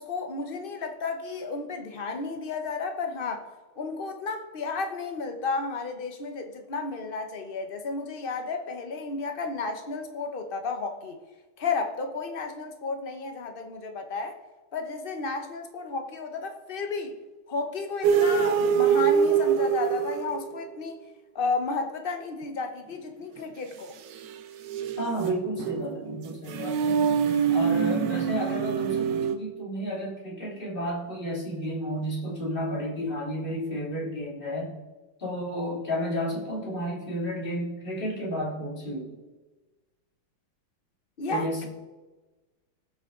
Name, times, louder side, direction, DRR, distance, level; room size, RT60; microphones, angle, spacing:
voice 1, 0.0-3.5 3.8-11.2 11.6-14.4 14.7-17.1 17.5-21.0 21.3-23.9 41.2-41.7, left 4 dB, 40° left, 5 dB, 0.8 m, -32 dB
sound 1, 18.0-20.7 24.2-29.4, right 7 dB, 65° right, 1.3 m, -25 dB
voice 2, 25.0-26.9 27.5-34.8 35.2-39.2 41.3-41.7, equal, 25° left, -4 dB, 2.7 m, -32 dB
19.0 x 6.4 x 3.8 m, 1.2 s
omnidirectional pair, 2.3 m